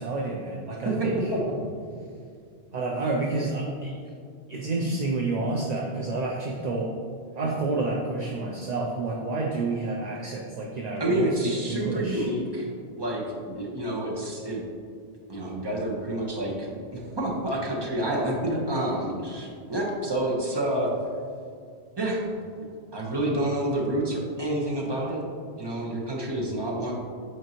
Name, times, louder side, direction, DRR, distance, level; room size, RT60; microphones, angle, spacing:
voice 1, 0.0-1.2 2.7-3.9 4.5-6.9 7.4-12.3, right 3 dB, 50° right, 0 dB, 0.6 m, -29 dB
voice 2, 0.8-1.6 11.0-12.7 13.0-14.6 15.3-20.9 22.0-22.7 22.9-25.2 25.6-26.9, right 1 dB, 25° right, -3 dB, 1.0 m, -28 dB
7.9 x 4.5 x 3.0 m, 2.3 s
omnidirectional pair, 1.1 m